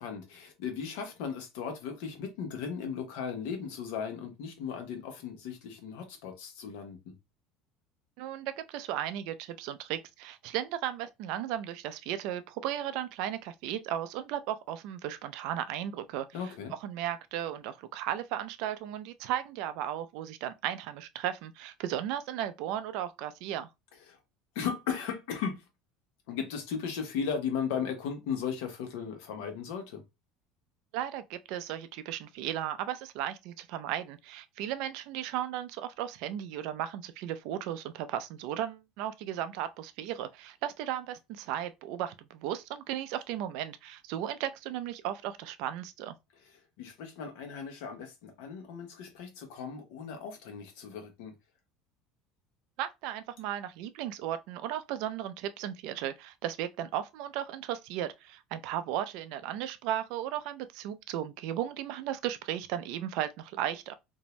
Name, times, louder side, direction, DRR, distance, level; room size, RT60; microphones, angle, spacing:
voice 1, 0.0-7.1 16.3-16.7 24.1-24.2 24.5-25.7 26.3-30.0 46.4-51.3, left 7 dB, 75° left, 0.9 m, -36 dB
voice 2, 8.2-16.3 16.8-23.7 30.9-46.1 52.8-63.9, right 11 dB, 65° right, 0.3 m, -35 dB
2.6 x 2.0 x 3.0 m
cardioid pair, 155°, 0 cm